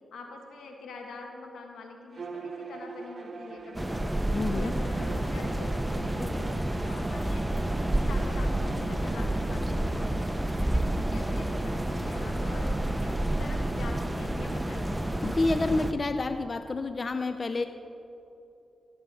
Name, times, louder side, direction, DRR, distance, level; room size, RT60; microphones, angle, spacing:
voice 1, 0.1-4.1 4.5-12.8 13.0-15.0, left 3 dB, 85° left, 2 dB, 1.3 m, -45 dB
Bowed string instrument, 2.1-8.9, right 4 dB, 55° right, 0.9 m, -43 dB
sound 1, 3.7-15.9, right 1 dB, 10° right, 0.7 m, -29 dB
voice 2, 4.3-4.7 15.2-17.7, left 3 dB, 50° left, 9 dB, 0.4 m, -28 dB
16.0 x 7.8 x 4.1 m, 2.9 s
cardioid pair, 50°, 0 cm